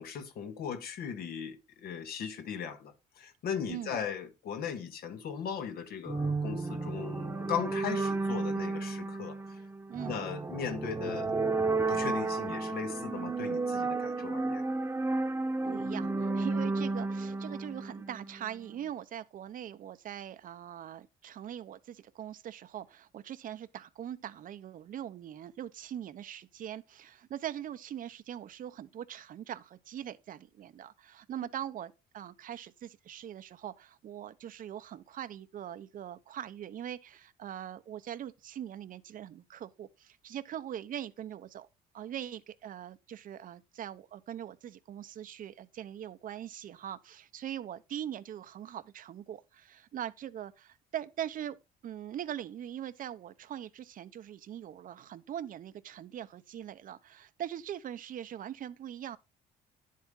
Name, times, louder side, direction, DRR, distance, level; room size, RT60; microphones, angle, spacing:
voice 1, 0.0-9.6 10.1-11.3 11.9-14.6, left 7 dB, 65° left, 1.7 m, -38 dB
voice 2, 3.7-4.0 9.9-10.2 15.6-41.7 41.9-51.6 51.8-59.2, right 10 dB, 55° right, 0.9 m, -42 dB
sound 1, 6.1-18.6, right 3 dB, 15° right, 1.2 m, -32 dB
10.5 x 7.5 x 3.8 m
cardioid pair, 110°, 17 cm